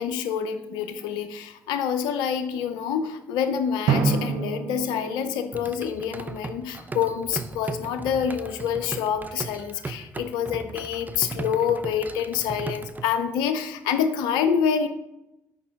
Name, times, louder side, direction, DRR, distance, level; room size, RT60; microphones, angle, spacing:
voice 1, 0.0-14.9, left 7 dB, 80° left, 9 dB, 0.5 m, -27 dB
Drum, 3.9-6.6, right 5 dB, 75° right, 0.7 m, -28 dB
sound 1, 5.5-13.0, right 3 dB, 25° right, 0.5 m, -37 dB
6.4 x 5.2 x 3.5 m, 0.93 s
hypercardioid pair, 50°, 7 cm